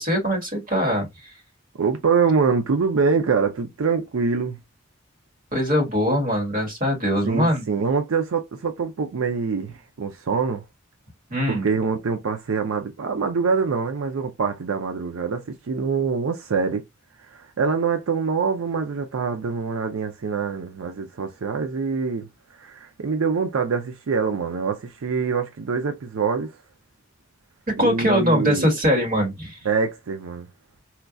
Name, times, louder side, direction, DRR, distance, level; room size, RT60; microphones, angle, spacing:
voice 1, 0.0-1.3 5.5-7.6 11.3-11.7 27.7-29.6, equal, 40° right, 1.5 m, -22 dB
voice 2, 1.8-4.6 7.2-10.6 11.5-16.8 17.2-26.6 27.8-28.7 29.6-30.5, right 5 dB, 80° right, 0.5 m, -24 dB
4.4 x 2.3 x 2.5 m
head